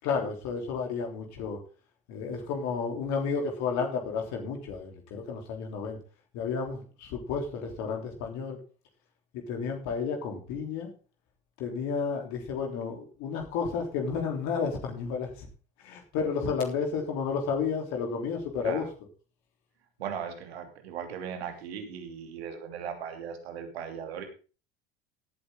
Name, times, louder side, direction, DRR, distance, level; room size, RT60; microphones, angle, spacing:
voice 1, 0.0-1.6 2.1-6.0 6.3-8.6 9.5-10.9 11.6-15.5 15.8-18.9, left 5 dB, 60° left, 2 dB, 3.6 m, -32 dB
voice 2, 20.0-24.2, right 7 dB, 80° right, 5 dB, 3.1 m, -38 dB
17.5 x 8.8 x 3.8 m, 0.36 s
hypercardioid pair, 75°, 31 cm